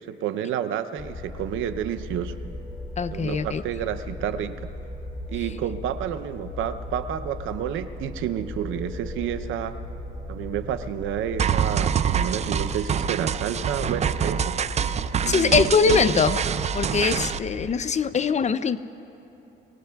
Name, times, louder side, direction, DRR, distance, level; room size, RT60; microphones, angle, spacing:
voice 1, 0.1-2.4 3.1-4.7 5.3-9.8 10.3-14.6 15.2-16.2, right 9 dB, 85° right, 11 dB, 0.7 m, -30 dB
sound 1, 1.0-17.7, left 1 dB, 15° left, 3.2 m, -37 dB
voice 2, 3.0-3.6 15.3-16.4 16.7-18.8, left 5 dB, 35° left, 12 dB, 0.5 m, -22 dB
sound 2, 11.4-17.4, right 8 dB, 35° right, 0.4 m, -26 dB
25.5 x 18.5 x 2.3 m, 2.9 s
cardioid pair, 90°, 20 cm